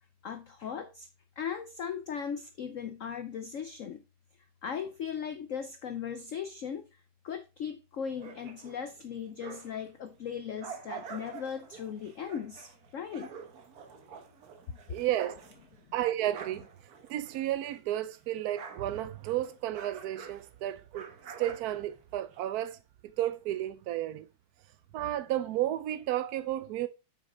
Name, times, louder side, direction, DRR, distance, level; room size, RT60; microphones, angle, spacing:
voice 1, 0.2-1.1 1.4-4.0 4.6-13.3, left 7 dB, 85° left, 0.7 m, -38 dB
sound 1, 8.1-9.9 10.3-17.9 18.1-22.4, right 6 dB, 55° right, 1.4 m, -47 dB
voice 2, 14.9-15.4 15.9-16.7 17.0-21.1 21.4-24.3 24.9-26.9, right 13 dB, 80° right, 0.8 m, -32 dB
7.3 x 6.5 x 3.8 m
omnidirectional pair, 2.2 m